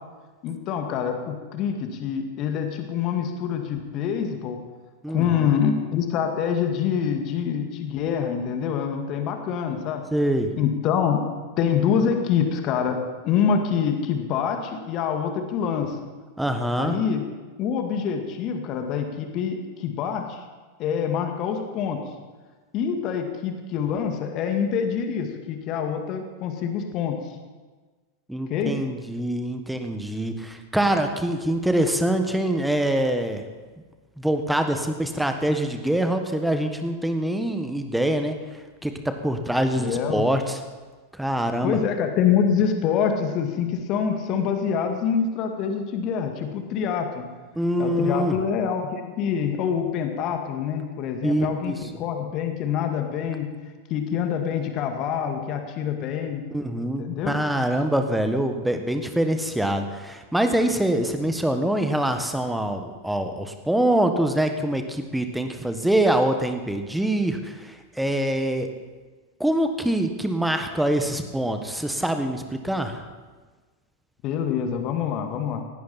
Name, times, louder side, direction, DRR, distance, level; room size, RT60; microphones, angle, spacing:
voice 1, 0.4-4.6 5.1-10.0 10.6-11.2 11.6-16.0 16.8-17.2 17.6-20.4 20.8-22.0 22.7-27.2 28.5-28.8 39.8-40.2 41.6-47.3 47.8-53.5 53.9-56.4 57.0-57.3 74.2-75.6, left 7 dB, 40° left, 5 dB, 2.0 m, -25 dB
voice 2, 5.0-5.6 10.1-10.5 16.4-17.0 28.3-33.4 34.2-38.3 38.8-40.6 41.1-41.8 47.5-48.4 51.2-51.8 56.5-68.7 69.4-73.1, right 1 dB, 5° right, 6 dB, 1.5 m, -24 dB
18.5 x 17.0 x 4.3 m, 1.3 s
figure-of-eight pair, 90°, 0 cm